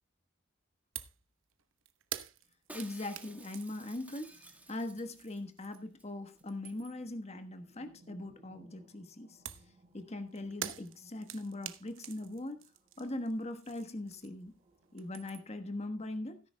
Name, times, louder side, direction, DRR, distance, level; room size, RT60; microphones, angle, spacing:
sound 1, 1.0-1.2 1.5-6.0 6.3-7.1 9.5-14.6 14.8-15.6, right 10 dB, 65° right, 1.0 m, -47 dB
sound 2, 2.4-15.8, right 1 dB, 30° right, 4.7 m, -66 dB
voice 1, 2.7-4.4 4.7-9.4 9.9-12.6 13.0-14.5 14.9-16.4, left 1 dB, 30° left, 1.3 m, -40 dB
Shatter, 2.7-5.4 5.7-5.8 6.0-6.4 6.7-6.8, right 2 dB, 5° right, 1.3 m, -53 dB
17.0 x 10.5 x 2.3 m
head